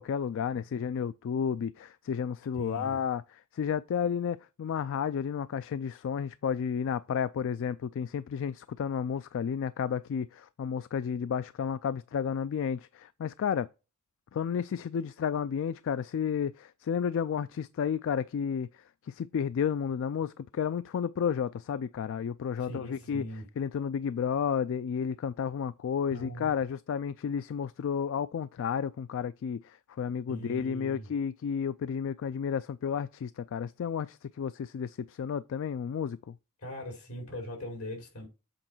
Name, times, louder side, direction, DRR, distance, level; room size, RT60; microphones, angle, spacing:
voice 1, 0.0-3.2 3.5-13.7 14.3-23.2 23.6-36.4, left 7 dB, 60° left, 0.3 m, -32 dB
voice 2, 2.5-3.0 22.6-23.5 26.1-26.5 30.3-31.1 36.6-38.3, equal, 80° left, 3.4 m, -41 dB
7.7 x 4.0 x 4.4 m
head